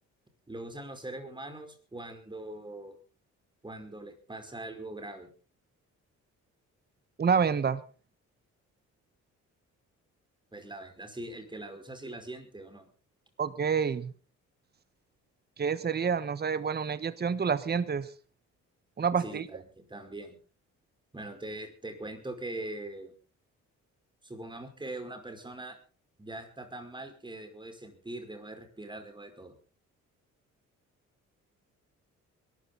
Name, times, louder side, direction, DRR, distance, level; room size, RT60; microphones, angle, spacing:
voice 1, 0.5-3.0 3.6-5.3 10.5-12.9 19.2-20.4 21.1-23.2 24.2-25.8 26.2-29.6, right 1 dB, 15° right, 6 dB, 5.1 m, -42 dB
voice 2, 7.2-7.8 13.4-14.1 15.6-18.1 19.0-19.5, right 6 dB, 35° right, 14 dB, 1.2 m, -28 dB
22.0 x 13.5 x 4.0 m, 0.37 s
cardioid pair, 90°, 30 cm